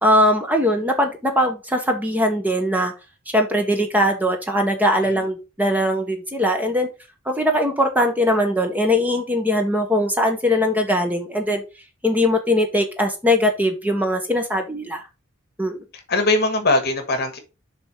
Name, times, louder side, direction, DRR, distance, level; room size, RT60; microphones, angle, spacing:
voice 1, 0.0-2.9 3.3-6.9 7.3-11.6 12.0-15.0 15.6-15.8, left 1 dB, 10° right, 1.0 m, -20 dB
voice 2, 16.1-17.4, left 2 dB, 50° left, 1.4 m, -21 dB
6.8 x 3.5 x 4.5 m
head